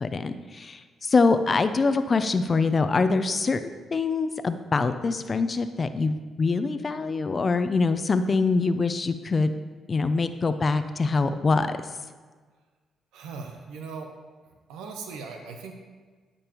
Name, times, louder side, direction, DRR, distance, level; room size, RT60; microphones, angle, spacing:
voice 1, 0.0-9.5 9.9-11.8, left 4 dB, 40° left, 10 dB, 0.5 m, -24 dB
voice 2, 13.1-14.1 14.7-15.7, right 4 dB, 90° right, 3 dB, 0.8 m, -39 dB
12.5 x 5.3 x 3.0 m, 1.5 s
supercardioid pair, 70°, 0 cm